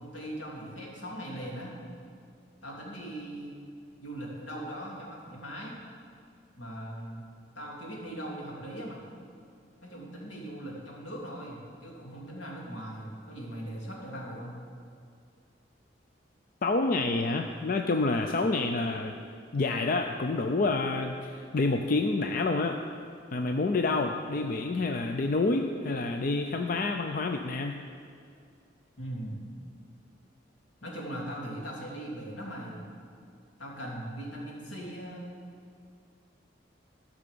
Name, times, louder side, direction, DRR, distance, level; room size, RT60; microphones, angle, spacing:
voice 1, 0.0-1.8 2.6-3.6 4.0-5.8 6.6-7.2 7.5-9.0 9.8-14.6 29.0-29.5 30.8-32.8 33.6-35.3, right 1 dB, 80° left, -3 dB, 2.8 m, -40 dB
voice 2, 16.6-19.1 19.5-22.8 23.3-27.8, left 3 dB, 50° left, 5 dB, 0.5 m, -28 dB
13.5 x 6.1 x 6.8 m, 2.4 s
head